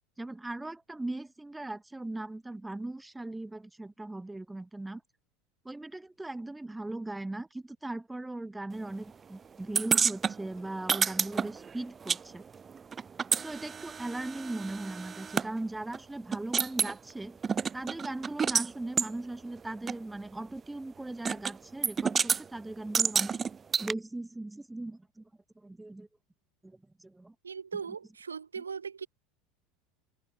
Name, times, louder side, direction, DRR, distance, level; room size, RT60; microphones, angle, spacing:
voice 1, 0.2-5.0 5.6-12.4 13.4-17.4 17.7-23.4 23.8-25.3 25.6-26.1 26.6-27.3, right 2 dB, 10° right, 5.5 m, -39 dB
sound 1, 9.8-12.2 12.5-15.5 15.9-16.0 16.3-17.0 17.4-18.7 19.0-19.1 19.9-20.0 21.3-21.6 21.8-22.4 22.9-23.9, right 6 dB, 25° right, 1.5 m, -29 dB
voice 2, 27.4-29.1, right 6 dB, 80° right, 5.0 m, -39 dB
figure-of-eight pair, 75°, 0 cm